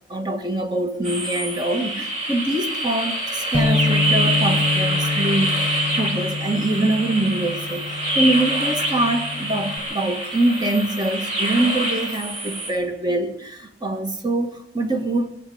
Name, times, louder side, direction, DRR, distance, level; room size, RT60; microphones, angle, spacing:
voice 1, 0.1-15.3, right 2 dB, 25° right, 1.6 m, -24 dB
sound 1, 1.0-12.7, right 1 dB, 40° right, 3.1 m, -26 dB
Bass guitar, 3.5-9.8, left 4 dB, 5° left, 1.7 m, -26 dB
20.0 x 8.1 x 8.7 m
head